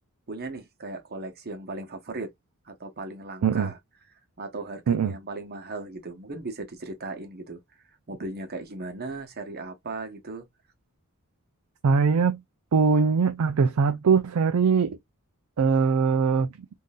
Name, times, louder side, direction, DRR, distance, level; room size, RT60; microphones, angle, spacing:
voice 1, 0.3-2.3 2.6-3.8 4.4-7.6 8.1-10.5, right 2 dB, 45° right, 1.0 m, -37 dB
voice 2, 11.8-12.4 12.7-15.0 15.6-16.5, right 5 dB, 75° right, 0.4 m, -21 dB
3.7 x 2.6 x 2.3 m
head